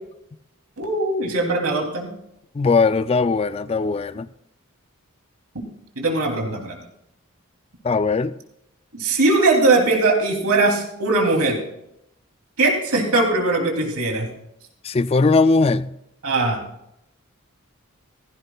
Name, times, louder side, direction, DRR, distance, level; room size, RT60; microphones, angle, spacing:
voice 1, 0.8-2.1 6.0-6.8 8.9-11.6 12.6-14.3 16.2-16.6, right 2 dB, 90° right, 2.9 m, -20 dB
voice 2, 2.5-4.3 7.8-8.3 14.8-15.9, left 4 dB, 25° left, 0.3 m, -19 dB
16.0 x 16.0 x 2.3 m
head